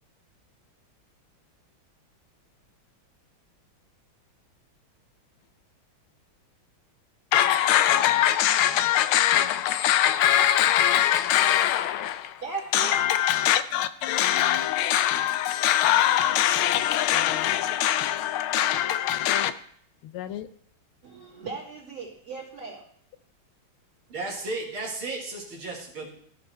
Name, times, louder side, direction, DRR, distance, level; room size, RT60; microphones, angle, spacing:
voice 1, 7.3-12.4 12.7-19.5 20.1-20.5, left 12 dB, 85° left, 1.4 m, -22 dB
voice 2, 12.4-13.0 21.0-22.8, right 4 dB, 25° right, 2.7 m, -37 dB
voice 3, 24.1-26.1, right 2 dB, 80° right, 2.5 m, -34 dB
14.0 x 5.4 x 3.3 m
omnidirectional pair, 2.3 m